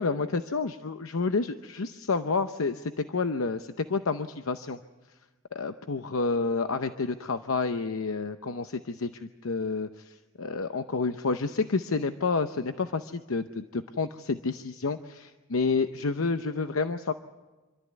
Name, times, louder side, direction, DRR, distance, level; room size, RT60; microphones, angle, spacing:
voice 1, 0.0-4.8 5.5-17.1, left 4 dB, 80° left, 9 dB, 0.8 m, -29 dB
26.5 x 13.5 x 9.4 m, 1.2 s
head